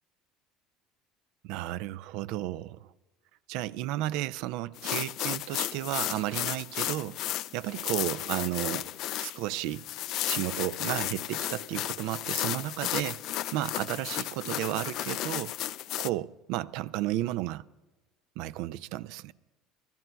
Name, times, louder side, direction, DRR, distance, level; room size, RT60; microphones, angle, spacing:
voice 1, 1.4-2.9 3.5-8.9 9.2-9.9 10.3-13.2 13.5-15.5 16.0-17.7 18.4-19.3, right 15 dB, 70° right, 0.4 m, -33 dB
sound 1, 4.8-16.1, left 14 dB, 60° left, 0.3 m, -34 dB
26.0 x 13.5 x 2.3 m
hypercardioid pair, 75°, 0 cm